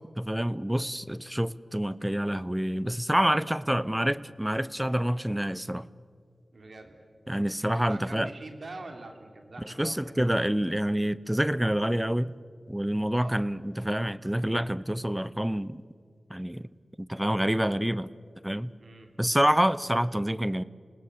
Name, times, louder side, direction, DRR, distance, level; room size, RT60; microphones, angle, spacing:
voice 1, 0.2-5.9 7.3-8.3 9.6-12.4 12.7-15.8 16.3-16.7 17.0-18.1 18.4-18.7 19.2-20.6, equal, 10° right, 17 dB, 0.7 m, -27 dB
voice 2, 3.4-4.2 6.5-7.0 7.9-10.2 13.2-13.5 18.8-19.1, right 2 dB, 70° right, 4 dB, 3.5 m, -45 dB
27.5 x 19.0 x 8.0 m, 2.1 s
cardioid pair, 50°, 0 cm